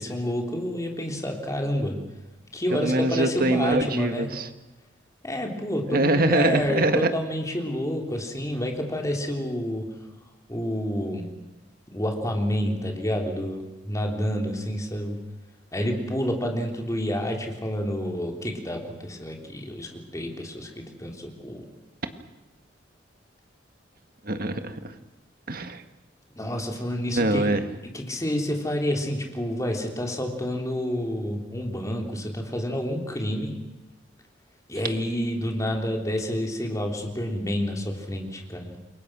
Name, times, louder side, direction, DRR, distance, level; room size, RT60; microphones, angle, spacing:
voice 1, 0.0-2.0 2.5-4.3 5.2-9.9 10.5-11.3 11.9-15.2 15.7-21.7 26.4-27.6 27.8-33.6 34.7-38.8, equal, 20° left, 2 dB, 3.6 m, -29 dB
voice 2, 2.7-4.5 5.9-7.1 24.2-25.0 25.5-25.8 27.2-27.6, right 2 dB, 50° right, 8 dB, 1.8 m, -23 dB
29.0 x 23.0 x 6.2 m, 1.0 s
head